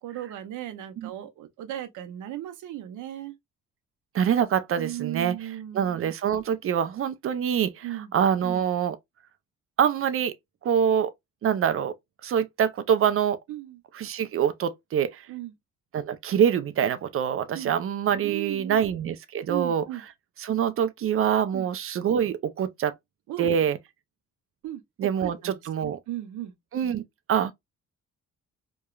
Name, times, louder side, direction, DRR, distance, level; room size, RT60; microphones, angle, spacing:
voice 1, 0.0-3.3 4.8-5.8 7.8-8.1 13.5-13.8 15.3-15.5 17.5-17.7 18.2-18.8 19.5-20.0 21.5-21.7 23.3-23.5 24.6-24.8 25.2-25.6 25.8-26.5, right 13 dB, 80° right, 0.7 m, -36 dB
voice 2, 4.1-5.4 5.7-9.0 9.8-10.3 10.6-11.1 11.4-11.9 12.2-13.4 13.9-15.3 15.9-19.8 20.4-22.9 23.4-23.8 25.0-26.0 26.7-27.0 27.3-27.5, right 8 dB, 45° right, 0.4 m, -25 dB
2.9 x 2.2 x 2.2 m
cardioid pair, 90°, 30 cm